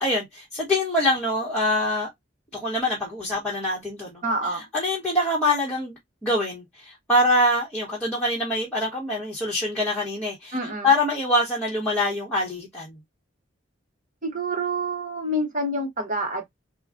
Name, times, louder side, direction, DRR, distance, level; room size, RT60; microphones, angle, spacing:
voice 1, 0.0-2.1 2.5-5.9 6.2-10.6 10.8-12.9, left 1 dB, 5° left, 1.0 m, -24 dB
voice 2, 4.2-4.6 10.5-10.9 14.2-16.4, right 1 dB, 40° right, 0.9 m, -27 dB
3.8 x 2.1 x 2.4 m
head